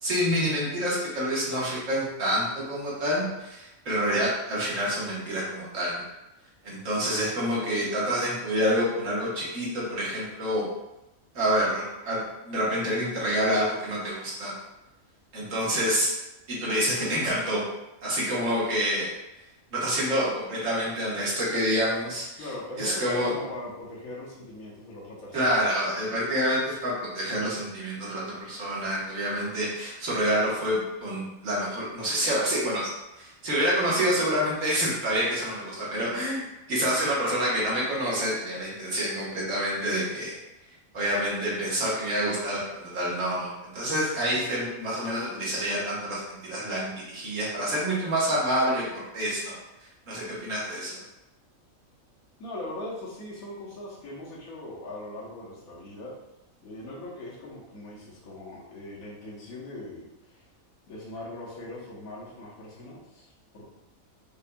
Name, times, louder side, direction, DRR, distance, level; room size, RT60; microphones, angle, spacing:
voice 1, 0.0-6.0 6.6-10.7 11.3-14.5 15.3-16.1 16.5-17.6 18.0-19.1 19.7-22.2 22.8-23.3 25.3-32.9 33.2-40.3 40.9-49.5 50.1-51.0, equal, 65° right, -6 dB, 1.6 m, -27 dB
voice 2, 22.4-25.5 52.4-56.1 56.6-60.5 60.9-63.7, left 1 dB, 80° left, -5 dB, 1.4 m, -40 dB
5.4 x 2.5 x 2.2 m, 0.94 s
omnidirectional pair, 1.5 m